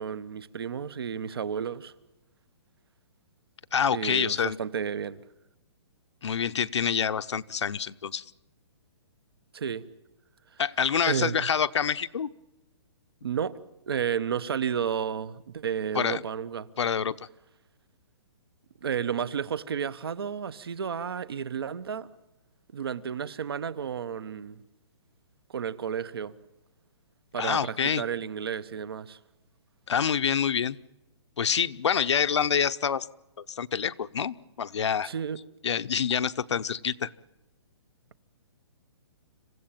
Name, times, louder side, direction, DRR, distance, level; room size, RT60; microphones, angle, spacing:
voice 1, 0.0-1.9 3.9-5.2 9.5-9.8 11.1-11.5 13.2-13.6 13.9-16.7 18.8-22.1 22.7-24.6 25.5-26.3 27.3-29.2 35.0-35.4, right 7 dB, 55° right, 1.0 m, -32 dB
voice 2, 3.7-4.6 6.2-8.2 10.6-12.3 15.9-16.2 16.8-17.1 27.4-28.0 29.9-30.8 31.4-33.1 33.5-35.1 35.6-37.1, left 7 dB, 75° left, 0.9 m, -27 dB
26.5 x 15.5 x 8.9 m
hypercardioid pair, 180°, 15 cm